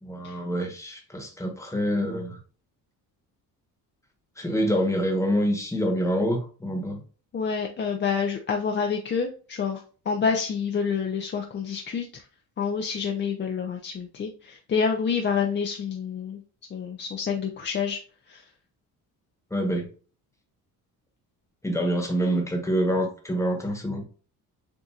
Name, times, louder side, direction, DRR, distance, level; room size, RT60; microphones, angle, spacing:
voice 1, 0.0-2.4 4.4-7.0 19.5-19.9 21.6-24.0, equal, 10° left, 2 dB, 1.1 m, -26 dB
voice 2, 7.3-12.2 12.6-16.4 16.7-18.0 18.3-18.5, left 6 dB, 30° left, 2 dB, 0.5 m, -28 dB
7.1 x 2.6 x 2.4 m, 0.38 s
cardioid pair, 135°, 36 cm